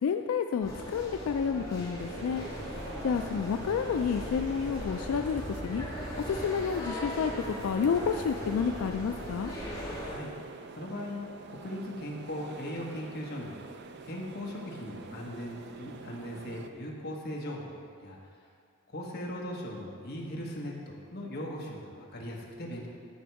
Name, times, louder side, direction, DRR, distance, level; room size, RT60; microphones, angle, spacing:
voice 1, 0.0-2.4 3.0-5.8 6.2-7.3 7.6-9.5, left 6 dB, 85° left, 6 dB, 0.3 m, -30 dB
sound 1, 0.6-10.1, equal, 20° left, 1.9 m, -38 dB
sound 2, 2.0-16.7, right 4 dB, 55° right, 0.4 m, -46 dB
voice 2, 10.7-11.2 11.5-13.5 14.0-17.7 18.0-18.2 18.9-22.9, left 1 dB, 50° left, -2 dB, 1.3 m, -39 dB
11.0 x 5.1 x 4.7 m, 2.4 s
head